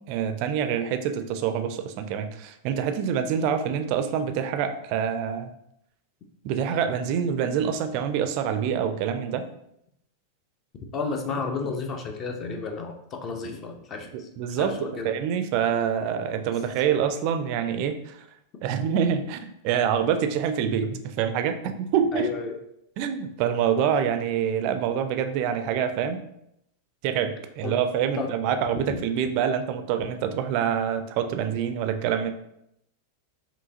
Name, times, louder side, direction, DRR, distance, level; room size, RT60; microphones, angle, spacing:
voice 1, 0.1-5.5 6.4-9.4 14.1-14.8 15.0-18.2 18.6-22.3 23.0-26.2 27.0-32.3, right 8 dB, 45° right, 8 dB, 0.4 m, -26 dB
voice 2, 10.9-15.1 20.6-20.9 22.1-22.6 27.6-27.8 28.2-28.3 28.9-29.0, left 4 dB, 30° left, 4 dB, 0.6 m, -32 dB
4.6 x 2.8 x 2.7 m, 0.78 s
figure-of-eight pair, 90°, 0 cm